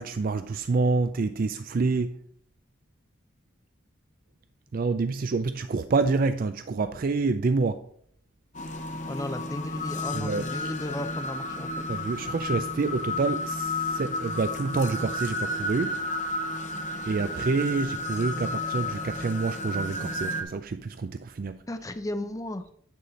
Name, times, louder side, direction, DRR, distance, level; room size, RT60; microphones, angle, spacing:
voice 1, 0.0-2.2 4.7-7.8 10.1-10.5 11.9-16.0 17.1-21.6, right 4 dB, 45° right, 0.4 m, -27 dB
sound 1, 8.5-20.4, left 1 dB, 40° left, 0.9 m, -32 dB
voice 2, 9.1-11.8 21.7-22.7, left 1 dB, 15° left, 0.5 m, -35 dB
9.6 x 4.3 x 5.0 m
head